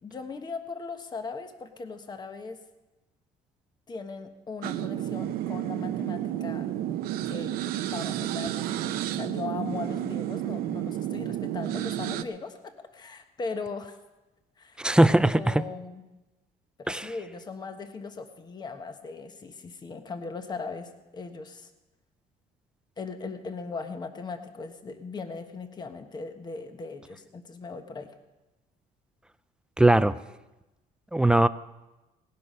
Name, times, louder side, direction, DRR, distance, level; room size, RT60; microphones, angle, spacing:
voice 1, 0.0-2.6 3.9-6.7 7.2-7.5 7.8-14.0 14.6-16.0 16.8-21.7 23.0-28.1, left 4 dB, 25° left, 7 dB, 1.3 m, -39 dB
sound 1, 4.6-12.2, right 12 dB, 80° right, 0.7 m, -31 dB
voice 2, 14.8-15.6 16.9-17.0 29.8-30.1 31.1-31.5, right 1 dB, 5° right, 13 dB, 0.4 m, -20 dB
18.5 x 11.0 x 5.5 m, 1.0 s
cardioid pair, 130°, 15 cm